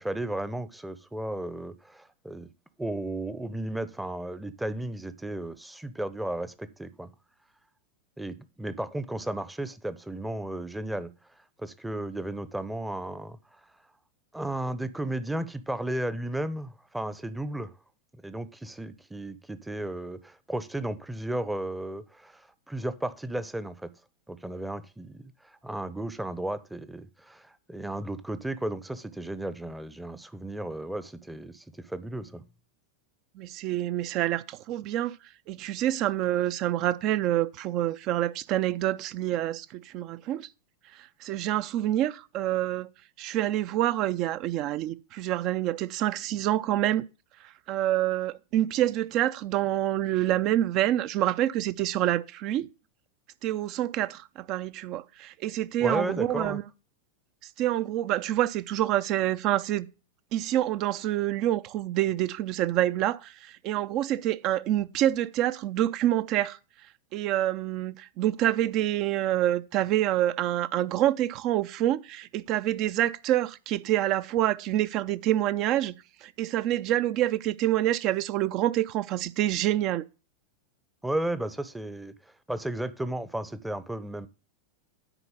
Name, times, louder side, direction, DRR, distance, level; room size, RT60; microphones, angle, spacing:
voice 1, 0.0-2.5 2.8-7.1 8.2-11.1 11.6-13.6 14.3-17.7 18.2-23.9 24.3-32.4 55.8-56.6 81.0-82.1 82.5-84.3, right 1 dB, 5° right, 0.7 m, -34 dB
voice 2, 33.4-35.2 35.5-40.5 41.2-42.9 43.2-47.0 47.7-52.7 53.4-56.6 57.6-59.9 60.3-66.6 67.1-76.0 76.2-80.0, right 13 dB, 40° right, 0.5 m, -27 dB
9.9 x 4.5 x 6.9 m
figure-of-eight pair, 90°, 0 cm